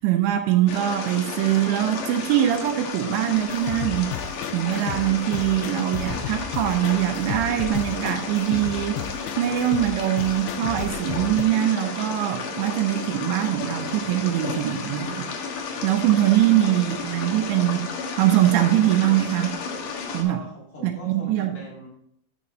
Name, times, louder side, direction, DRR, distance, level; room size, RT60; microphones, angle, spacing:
voice 1, 0.0-9.0 9.4-15.3 15.8-17.9 18.2-19.6 20.1-20.4 20.8-21.6, right 13 dB, 80° right, 5 dB, 2.9 m, -22 dB
sound 1, 0.7-20.2, left 5 dB, 70° left, 2.0 m, -33 dB
sound 2, 3.3-11.4, left 9 dB, 90° left, 2.4 m, -34 dB
voice 2, 20.2-21.9, equal, 35° left, -5 dB, 4.0 m, -40 dB
12.0 x 5.1 x 3.9 m, 0.70 s
omnidirectional pair, 5.4 m